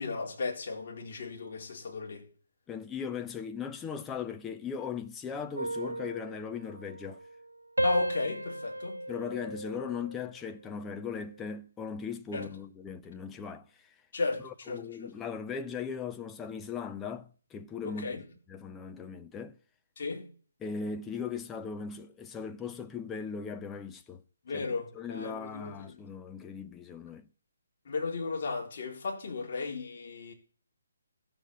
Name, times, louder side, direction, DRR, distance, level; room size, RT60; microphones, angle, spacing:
voice 1, 0.0-2.3 7.8-9.0 12.3-12.5 14.1-15.1 17.8-18.3 20.0-20.3 24.4-26.0 27.9-30.3, left 4 dB, 50° left, 4.0 m, -35 dB
voice 2, 2.7-7.2 9.1-13.9 14.4-18.2 18.5-19.6 20.6-24.2 24.5-24.6 24.9-27.3, left 6 dB, 10° left, 0.9 m, -38 dB
sound 1, 5.6-7.4 7.8-10.3 10.8-11.1, right 1 dB, 90° right, 1.3 m, -35 dB
14.5 x 7.4 x 8.3 m
figure-of-eight pair, 140°, 0 cm